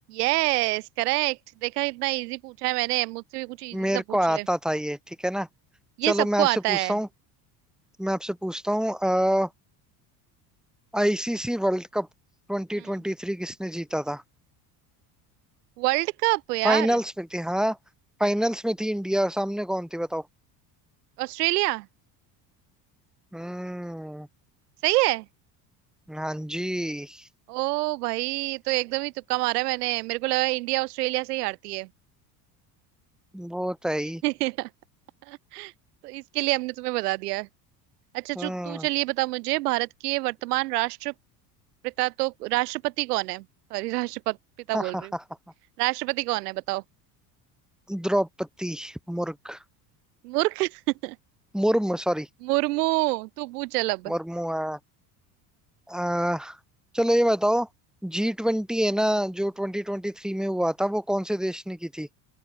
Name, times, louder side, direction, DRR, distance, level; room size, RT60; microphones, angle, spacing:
voice 1, 0.1-4.5 6.0-7.0 15.8-17.0 21.2-21.9 24.8-25.3 27.5-31.9 34.2-34.7 35.3-35.7 36.0-37.5 38.1-41.1 41.8-43.4 43.7-44.4 44.7-45.1 45.8-46.8 50.2-51.2 52.4-54.1, right 21 dB, 90° right, 5.6 m, -27 dB
voice 2, 3.7-5.5 6.0-7.1 8.0-9.5 10.9-12.1 12.5-14.2 16.6-17.8 18.2-20.2 23.3-24.3 26.1-27.3 33.3-34.2 38.3-38.9 44.7-45.2 47.9-49.6 51.5-52.3 54.1-54.8 55.9-56.6 56.9-57.7 58.0-62.1, equal, ahead, 6.0 m, -27 dB
open air
supercardioid pair, 95°, 45 cm